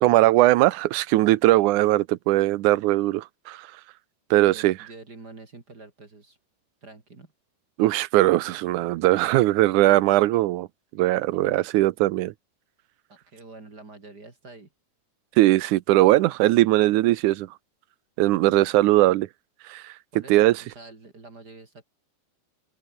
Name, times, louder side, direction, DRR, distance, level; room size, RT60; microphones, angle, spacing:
voice 1, 0.0-3.7 4.3-4.8 7.8-10.7 11.0-12.3 15.4-17.5 18.2-19.3 19.7-19.9 20.3-20.6, right 17 dB, 85° right, 1.8 m, -20 dB
voice 2, 4.3-6.4 6.8-7.3 13.1-14.7 20.1-21.8, right 3 dB, 30° right, 3.1 m, -46 dB
open air
omnidirectional pair, 4.5 m